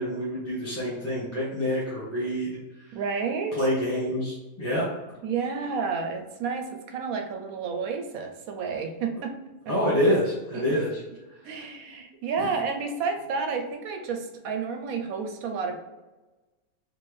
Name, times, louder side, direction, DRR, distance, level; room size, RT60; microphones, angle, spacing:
voice 1, 0.0-2.9 3.5-4.9 9.7-11.0 11.4-11.6 12.4-12.5, equal, 10° left, -9 dB, 1.1 m, -27 dB
voice 2, 2.9-3.7 5.2-9.3 9.7-9.8 10.5-10.6 11.4-15.8, right 5 dB, 75° right, 5 dB, 1.0 m, -30 dB
4.3 x 3.2 x 3.2 m, 1.1 s
omnidirectional pair, 1.6 m